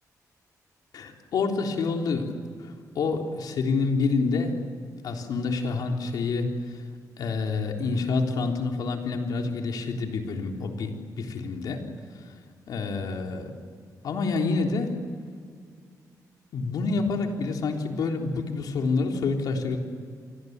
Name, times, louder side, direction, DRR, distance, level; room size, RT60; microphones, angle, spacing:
voice 1, 0.9-2.3 2.6-4.6 5.0-6.8 7.2-11.8 12.7-13.5 14.0-15.0 16.5-19.8, left 4 dB, 75° left, 2 dB, 3.6 m, -28 dB
28.5 x 23.5 x 8.2 m, 2.1 s
wide cardioid pair, 155°, 7 cm